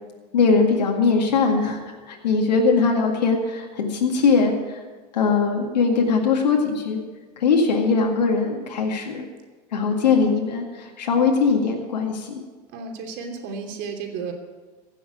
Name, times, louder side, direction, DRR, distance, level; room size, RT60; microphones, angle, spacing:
voice 1, 0.3-1.8 2.1-4.8 5.1-7.0 7.4-9.3 9.7-12.4, left 4 dB, 90° left, 1 dB, 2.0 m, -21 dB
voice 2, 10.0-10.4 12.7-14.3, right 5 dB, 60° right, 3 dB, 3.0 m, -33 dB
16.0 x 7.2 x 9.2 m, 1.4 s
hypercardioid pair, 100°, 21 cm